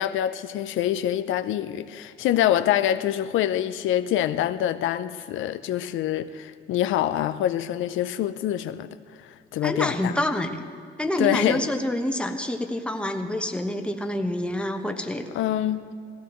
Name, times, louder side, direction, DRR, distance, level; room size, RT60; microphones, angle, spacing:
voice 1, 0.0-8.9 9.2-10.1 11.2-11.7 15.3-15.9, left 11 dB, 80° left, 0.5 m, -25 dB
voice 2, 9.6-10.6 11.0-15.3, left 1 dB, 5° left, 1.1 m, -27 dB
17.0 x 15.5 x 3.1 m
cardioid pair, 90°, 20 cm